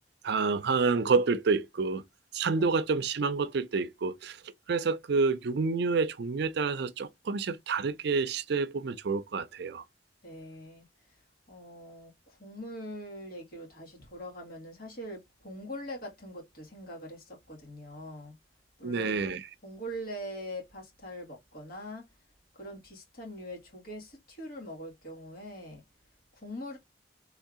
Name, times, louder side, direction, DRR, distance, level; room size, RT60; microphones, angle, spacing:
voice 1, 0.2-2.0 2.3-4.4 4.7-9.9 18.8-19.5, right 4 dB, 65° right, 0.5 m, -28 dB
voice 2, 10.2-11.2 11.5-18.4 18.8-19.4 19.6-22.1 22.5-25.8 26.3-26.8, equal, 55° left, 1.8 m, -43 dB
3.4 x 2.7 x 3.6 m
head